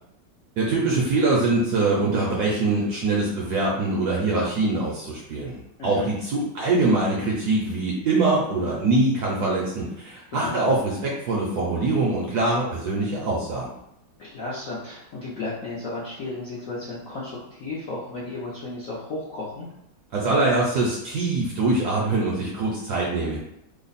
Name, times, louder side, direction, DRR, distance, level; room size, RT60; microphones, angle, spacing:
voice 1, 0.6-13.7 20.1-23.4, right 2 dB, 70° right, -4 dB, 1.0 m, -23 dB
voice 2, 5.8-6.1 10.3-10.6 14.2-19.7, left 2 dB, 70° left, -7 dB, 0.8 m, -34 dB
3.3 x 2.1 x 3.9 m, 0.81 s
omnidirectional pair, 2.2 m